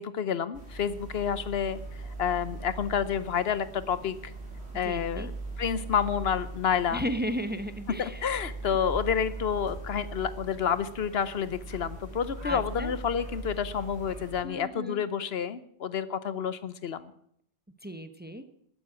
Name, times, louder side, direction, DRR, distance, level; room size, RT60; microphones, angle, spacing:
voice 1, 0.0-4.3 4.7-5.3 5.6-7.0 8.0-17.1, left 7 dB, 70° left, 15 dB, 1.0 m, -29 dB
sound 1, 0.5-14.4, right 3 dB, 80° right, 3.9 m, -40 dB
voice 2, 4.8-5.3 6.9-8.3 12.4-12.9 14.4-15.0 17.8-18.4, equal, 10° right, 10 dB, 0.8 m, -34 dB
13.0 x 9.5 x 8.7 m, 0.68 s
omnidirectional pair, 1.1 m